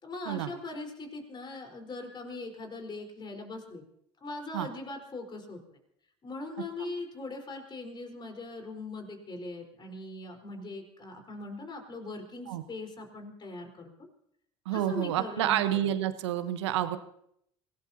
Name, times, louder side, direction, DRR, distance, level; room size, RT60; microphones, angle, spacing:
voice 1, 0.0-3.8 4.2-5.8 6.2-13.9 14.7-15.6, left 2 dB, 30° left, 3 dB, 4.5 m, -40 dB
voice 2, 14.6-17.0, right 12 dB, 80° right, 11 dB, 1.1 m, -29 dB
26.0 x 18.0 x 2.9 m, 0.72 s
hypercardioid pair, 70°, 14 cm